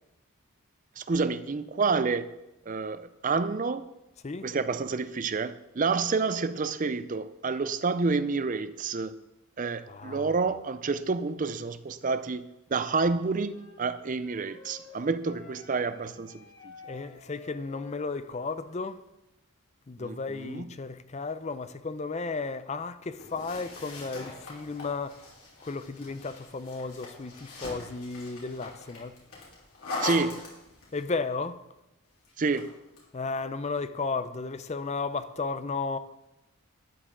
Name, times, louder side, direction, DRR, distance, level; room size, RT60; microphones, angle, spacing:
voice 1, 1.0-2.3 2.7-3.9 4.4-9.2 9.6-16.4 20.0-20.7 30.0-30.4 32.4-32.7, right 4 dB, 35° right, 0.4 m, -29 dB
voice 2, 9.9-10.3 16.9-19.0 19.9-25.2 25.6-29.1 30.9-31.6 33.1-36.0, left 4 dB, 30° left, 0.5 m, -34 dB
Wind instrument woodwind instrument, 13.5-19.0, left 5 dB, 60° left, 3.8 m, -51 dB
sound 1, 23.2-31.0 32.2-33.1, left 2 dB, 80° left, 3.6 m, -41 dB
12.5 x 9.7 x 3.7 m
head